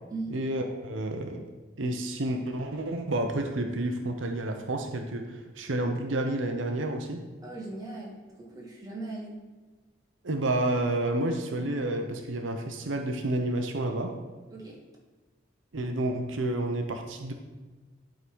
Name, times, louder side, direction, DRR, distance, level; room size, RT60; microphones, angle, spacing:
voice 1, 0.3-1.5 1.8-7.2 10.2-14.1 15.7-17.3, right 1 dB, 85° right, 4 dB, 0.8 m, -30 dB
voice 2, 7.4-9.4 14.5-14.8, right 2 dB, 20° right, -3 dB, 1.7 m, -39 dB
11.5 x 3.8 x 4.6 m, 1.3 s
head